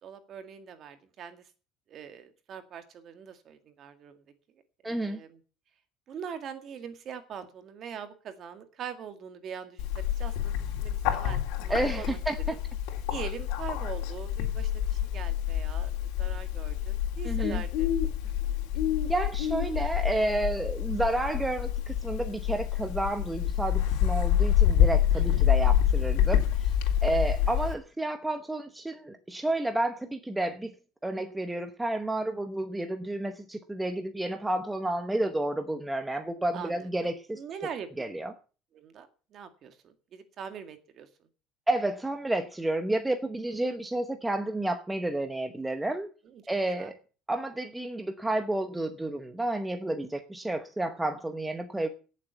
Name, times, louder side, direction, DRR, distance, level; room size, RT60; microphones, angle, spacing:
voice 1, 0.0-1.5 1.9-4.2 4.8-5.4 6.1-12.2 12.5-12.6 13.1-18.3 25.1-25.4 27.4-27.5 36.5-37.9 38.7-41.1 46.2-46.4 46.8-46.9, right 7 dB, 35° right, 9 dB, 1.9 m, -43 dB
voice 2, 4.8-5.2 11.7-12.4 17.2-17.6 19.1-26.7 27.0-30.7 31.0-37.4 38.0-38.3 41.7-46.1 46.5-47.0 47.3-51.9, right 2 dB, 5° right, 7 dB, 0.9 m, -30 dB
Bird, 9.8-27.7, left 10 dB, 80° left, 3.4 m, -27 dB
17.0 x 7.5 x 7.1 m, 0.37 s
cardioid pair, 170°, 0 cm